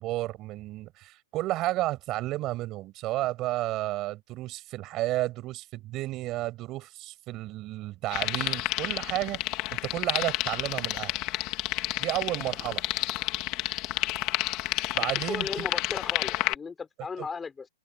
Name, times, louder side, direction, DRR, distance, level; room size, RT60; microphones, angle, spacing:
voice 1, 0.0-9.4 9.7-11.1 12.0-12.8 14.9-15.7 17.2-17.3, right 17 dB, 20° right, 6.4 m, -32 dB
sound 1, 8.1-16.5, left 18 dB, 25° left, 2.0 m, -30 dB
voice 2, 15.3-17.7, left 5 dB, 10° left, 3.7 m, -36 dB
hypercardioid pair, 170°, 0 cm